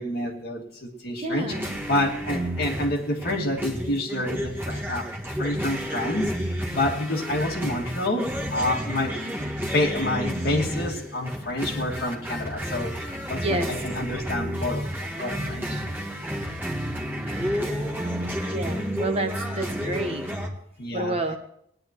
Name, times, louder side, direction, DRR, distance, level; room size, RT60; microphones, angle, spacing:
voice 1, 0.0-5.1 5.4-9.3 9.6-15.8 20.8-21.4, left 1 dB, 50° left, 0 dB, 2.3 m, -28 dB
voice 2, 1.2-1.6 13.4-13.7 17.2-17.6 18.4-20.3 20.9-21.4, right 2 dB, 30° right, 5 dB, 1.1 m, -30 dB
sound 1, 1.5-20.5, equal, 10° right, 1.7 m, -31 dB
19.0 x 11.0 x 3.1 m, 0.69 s
head